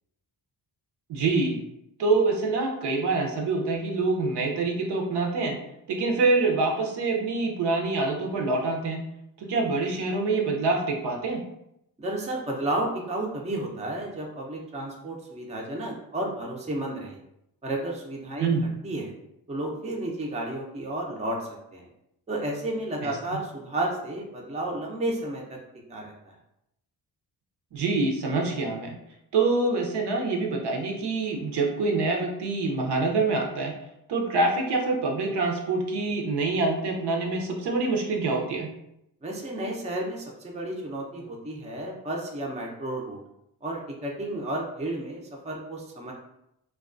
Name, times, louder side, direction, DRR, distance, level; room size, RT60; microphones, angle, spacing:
voice 1, 1.1-1.6 2.0-5.6 5.9-9.0 9.4-11.4 18.4-18.7 23.0-23.4 27.7-29.0 29.3-33.7 34.1-38.7, right 3 dB, 65° right, 1 dB, 0.6 m, -26 dB
voice 2, 12.0-17.2 17.6-18.5 18.8-19.1 19.5-21.9 22.3-25.4 25.9-26.3 39.2-43.2 43.6-46.1, right 1 dB, 15° right, -1 dB, 0.5 m, -32 dB
2.2 x 2.2 x 2.4 m, 0.81 s
cardioid pair, 65°, 45 cm